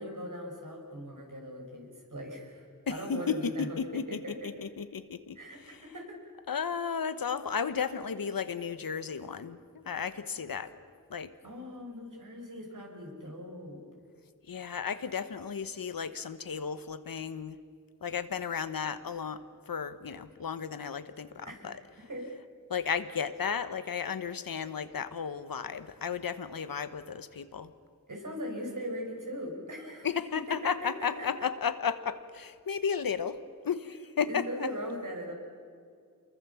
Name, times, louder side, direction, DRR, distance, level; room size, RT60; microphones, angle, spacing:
voice 1, 0.0-4.5 5.3-6.2 11.4-13.8 21.4-21.7 22.1-22.2 28.1-30.1 30.6-30.9 31.2-31.3 34.3-35.3, equal, 65° right, 1 dB, 6.1 m, -40 dB
voice 2, 2.9-5.8 6.5-10.7 11.1-11.3 14.5-17.6 18.0-21.8 22.7-27.7 30.0-34.7, left 6 dB, 80° left, 12 dB, 1.1 m, -34 dB
28.0 x 22.0 x 7.1 m, 2.1 s
wide cardioid pair, 60°, 34 cm